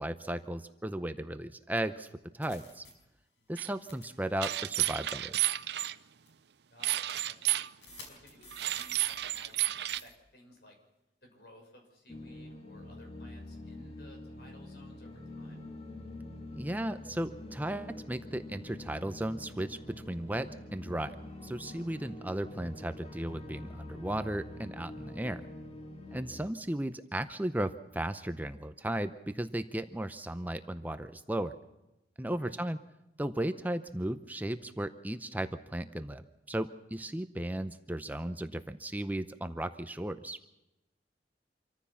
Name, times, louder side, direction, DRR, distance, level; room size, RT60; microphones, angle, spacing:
voice 1, 0.0-2.1 2.3-2.9 3.5-5.4 16.5-19.8 20.1-21.2 21.4-25.4 26.1-31.6 32.2-32.8 33.2-40.4, right 1 dB, 10° right, 10 dB, 0.7 m, -35 dB
sound 1, 1.8-1.9 2.4-2.9 3.9-4.1 4.4-4.5 5.4-5.6 6.3-6.4 7.8-9.7 9.9-10.1, equal, 90° left, 5.0 m, -50 dB
sound 2, 3.6-3.7 4.4-5.9 6.8-7.7 8.5-10.0, right 15 dB, 65° right, 0.6 m, -31 dB
voice 2, 6.7-7.0 7.3-7.7 8.0-10.8 11.2-15.7 26.1-26.3 32.3-32.5, left 1 dB, 65° left, 3 dB, 5.9 m, -58 dB
sound 3, 12.1-26.5, left 1 dB, 35° left, 2.2 m, -46 dB
26.0 x 14.5 x 7.2 m, 0.95 s
head